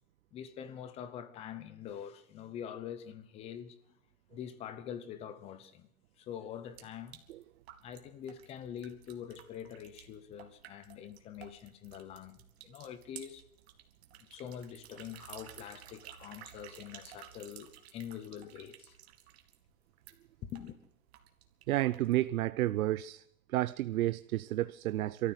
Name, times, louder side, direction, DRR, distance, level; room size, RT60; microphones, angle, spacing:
voice 1, 0.3-3.8 4.3-5.9 6.2-7.2 7.8-13.4 14.3-19.0 20.5-20.8, left 9 dB, 15° left, 0.8 m, -45 dB
sound 1, 6.6-22.3, right 11 dB, 50° right, 2.3 m, -54 dB
voice 2, 21.7-23.2 23.5-25.3, right 15 dB, 85° right, 0.7 m, -31 dB
23.5 x 14.0 x 8.0 m
supercardioid pair, 175°, 41 cm